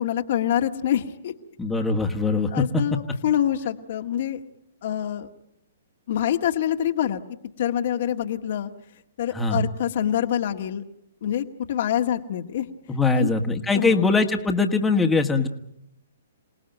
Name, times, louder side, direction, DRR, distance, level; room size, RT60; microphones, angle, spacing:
voice 1, 0.0-1.3 2.5-4.4 4.8-5.3 6.1-7.2 7.6-8.7 9.2-10.8 11.2-12.7 13.1-13.3 13.7-14.1, left 10 dB, 60° left, 4 dB, 1.8 m, -25 dB
voice 2, 1.6-2.8 9.3-9.6 12.9-15.5, left 3 dB, 5° left, 2 dB, 1.7 m, -22 dB
28.0 x 18.5 x 9.1 m, 0.82 s
hypercardioid pair, 135°, 0 cm